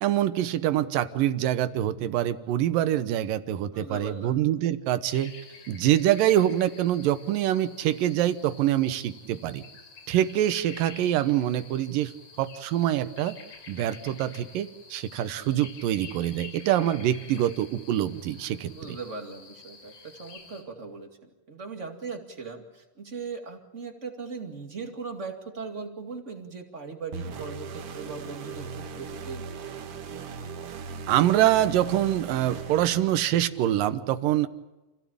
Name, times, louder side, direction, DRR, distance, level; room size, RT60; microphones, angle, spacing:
voice 1, 0.0-5.3 5.7-9.6 10.1-12.1 12.4-13.4 13.7-18.7 31.1-34.5, right 12 dB, 90° right, 12 dB, 2.7 m, -25 dB
voice 2, 3.7-4.4 18.7-29.4, right 4 dB, 25° right, 4 dB, 2.0 m, -39 dB
sound 1, 5.1-20.6, left 5 dB, 85° left, 5.1 m, -49 dB
sound 2, 27.1-33.6, right 5 dB, 55° right, 2.0 m, -39 dB
28.0 x 16.5 x 8.8 m, 1.1 s
omnidirectional pair, 3.8 m